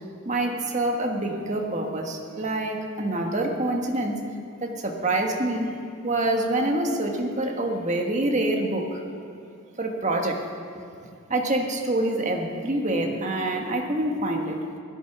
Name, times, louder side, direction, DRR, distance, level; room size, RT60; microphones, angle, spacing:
voice 1, 0.2-4.1 4.6-5.7 6.0-9.0 9.8-10.4 11.3-14.6, right 1 dB, 30° right, 2 dB, 1.5 m, -26 dB
16.5 x 12.0 x 6.0 m, 2.5 s
head